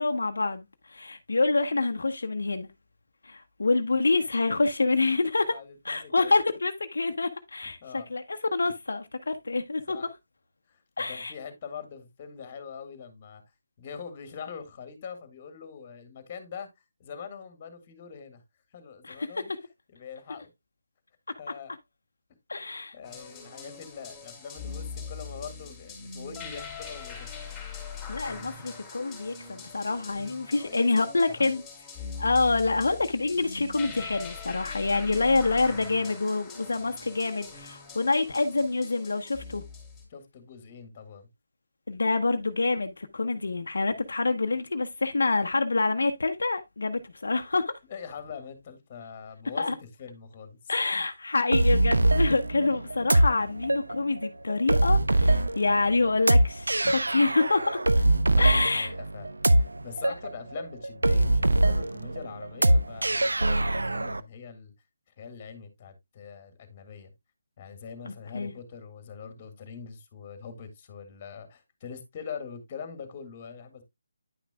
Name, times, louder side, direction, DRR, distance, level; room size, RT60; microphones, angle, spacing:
voice 1, 0.0-2.7 3.2-5.6 5.8-10.1 11.0-11.3 19.0-19.6 22.5-22.9 28.1-31.6 32.2-39.6 41.9-47.8 49.6-49.7 50.7-57.8 58.4-58.9 68.3-68.5, left 3 dB, 75° left, 0.8 m, -27 dB
voice 2, 5.5-6.3 7.8-8.1 9.9-10.1 10.7-13.4 13.8-16.7 17.0-18.4 18.7-19.5 19.9-20.5 21.4-21.7 22.9-27.4 30.6-31.5 40.1-41.3 47.9-50.7 58.3-59.3 59.5-64.7 65.2-67.1 67.6-73.8, left 6 dB, 30° left, 1.7 m, -43 dB
sound 1, 23.0-40.0, left 5 dB, 10° left, 2.9 m, -42 dB
sound 2, 51.5-64.2, right 1 dB, 90° right, 0.5 m, -23 dB
10.0 x 6.0 x 2.2 m
figure-of-eight pair, 155°, 0 cm